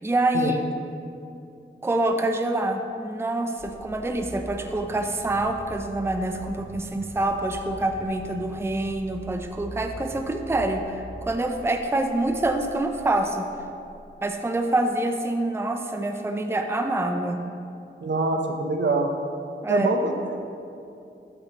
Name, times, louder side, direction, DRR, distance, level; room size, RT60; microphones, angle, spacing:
voice 1, 0.0-0.6 1.8-13.5 14.2-17.4 19.6-19.9, right 2 dB, 10° right, 5 dB, 0.5 m, -26 dB
sound 1, 3.6-14.5, equal, 40° left, 1.9 m, -43 dB
voice 2, 18.0-19.1 19.7-20.1, right 2 dB, 60° right, 3 dB, 0.8 m, -24 dB
8.7 x 8.6 x 3.0 m, 2.6 s
cardioid pair, 50°, 21 cm